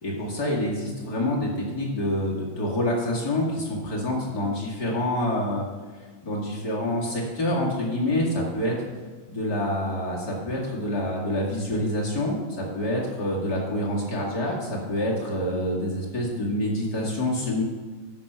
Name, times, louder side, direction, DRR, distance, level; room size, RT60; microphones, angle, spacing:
voice 1, 0.0-5.7 6.2-8.7 9.3-17.6, left 1 dB, 30° left, -3 dB, 2.3 m, -27 dB
12.5 x 5.3 x 5.7 m, 1.5 s
omnidirectional pair, 3.5 m